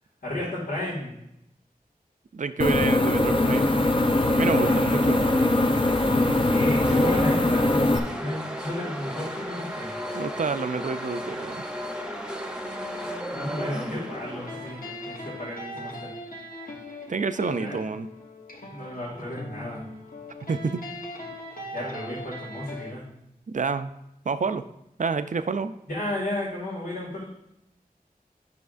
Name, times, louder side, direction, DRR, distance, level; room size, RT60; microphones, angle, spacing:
voice 1, 0.2-1.2 4.6-4.8 6.4-10.0 13.3-14.8 15.0-16.1 17.6-17.8 18.7-19.8 21.7-23.1 25.9-27.2, left 1 dB, 90° left, -9 dB, 2.0 m, -33 dB
voice 2, 2.3-3.7 4.3-5.2 10.1-11.6 17.1-18.1 20.5-20.8 23.5-23.9 24.3-24.6 25.0-25.7, right 5 dB, 55° right, 11 dB, 0.4 m, -28 dB
sound 1, 2.6-8.0, left 2 dB, 35° left, 0.5 m, -21 dB
sound 2, 3.0-15.3, equal, 5° right, 0.7 m, -35 dB
sound 3, 12.6-22.9, left 1 dB, 65° left, 1.1 m, -40 dB
9.4 x 5.8 x 2.5 m, 0.84 s
wide cardioid pair, 45°, 16 cm